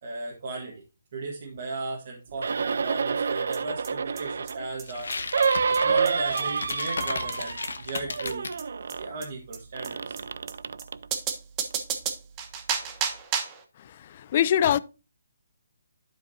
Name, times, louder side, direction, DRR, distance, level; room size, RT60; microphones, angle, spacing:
voice 1, 0.0-0.8 1.1-5.1 5.7-8.5 9.0-10.2, right 3 dB, 50° right, 1.6 m, -36 dB
sound 1, 2.4-4.7 5.3-7.8 8.1-9.1 9.7-11.1 11.7-11.8, right 5 dB, 65° right, 0.4 m, -28 dB
sound 2, 3.5-3.6 3.8-3.9 4.2-4.3 4.5-4.6 4.8-4.9 5.1-5.2 5.4-5.5 5.7-5.8 6.0-6.1 6.4-6.5 6.7-6.8 7.0-7.1 7.3-7.4 7.6-7.7 7.9-8.0 8.3-8.4 8.6-8.7 8.9-9.0 9.2-9.3 9.5-9.6 9.8-9.9 10.2-10.3 10.5-10.6 10.8-10.9 11.1-13.6, right 7 dB, 20° right, 1.1 m, -32 dB
sound 3, 4.9-8.6, left 4 dB, 75° left, 1.0 m, -35 dB
voice 2, 14.1-14.8, left 10 dB, 40° left, 0.4 m, -22 dB
11.5 x 5.0 x 2.8 m
hypercardioid pair, 150°, 0 cm